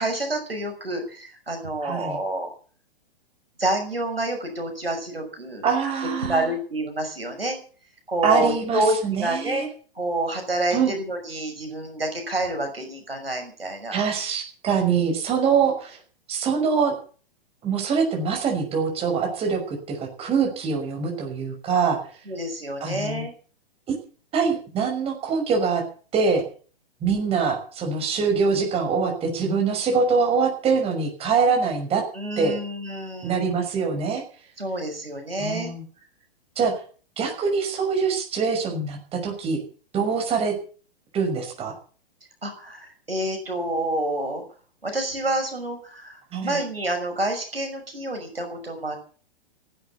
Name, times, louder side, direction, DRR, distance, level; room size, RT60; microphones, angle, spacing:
voice 1, 0.0-2.5 3.6-5.7 6.2-7.6 8.1-9.7 9.9-14.0 22.3-23.3 32.1-33.5 34.6-35.7 42.4-44.4 44.8-49.0, right 1 dB, 80° right, 4 dB, 6.1 m, -28 dB
voice 2, 1.8-2.2 5.6-6.5 8.2-9.7 10.7-10.9 13.9-16.0 16.3-16.9 17.6-22.0 22.8-23.3 23.9-24.0 24.3-25.8 26.1-26.4 27.0-32.0 32.4-32.5 33.2-34.2 35.4-35.8 36.6-36.7 37.2-39.6 39.9-40.5 41.1-41.7 46.3-46.6, right 5 dB, 20° right, 2 dB, 5.9 m, -24 dB
16.0 x 11.0 x 8.3 m, 0.42 s
figure-of-eight pair, 110°, 29 cm